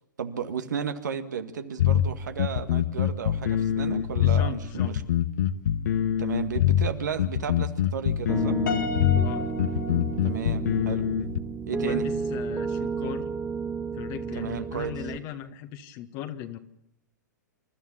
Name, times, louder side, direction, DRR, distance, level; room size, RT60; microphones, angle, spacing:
voice 1, 0.2-5.0 6.2-8.6 10.2-11.0 11.7-12.1 14.4-14.9, right 7 dB, 70° right, 8 dB, 1.9 m, -33 dB
sound 1, 1.8-11.4, left 10 dB, 65° left, 1.1 m, -24 dB
voice 2, 4.2-5.0 9.2-9.5 11.8-13.3 13.9-16.6, left 11 dB, 40° left, 7 dB, 1.6 m, -38 dB
Piano, 8.3-15.2, right 5 dB, 10° right, 1.5 m, -32 dB
Piano 2, 8.7-10.9, left 4 dB, 80° left, 3.6 m, -35 dB
27.5 x 13.0 x 8.5 m, 0.82 s
hypercardioid pair, 115°, 10 cm